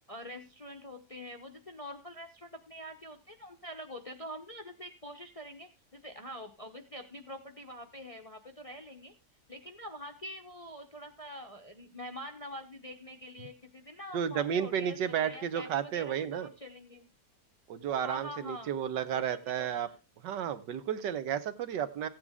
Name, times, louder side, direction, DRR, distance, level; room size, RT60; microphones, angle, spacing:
voice 1, 0.1-9.1 9.5-17.1 18.0-18.7 19.1-20.0, equal, 30° left, 5 dB, 0.6 m, -45 dB
voice 2, 14.1-16.5 17.7-19.9 20.2-22.1, right 9 dB, 80° right, 12 dB, 1.5 m, -32 dB
15.0 x 8.7 x 3.6 m, 0.31 s
omnidirectional pair, 1.9 m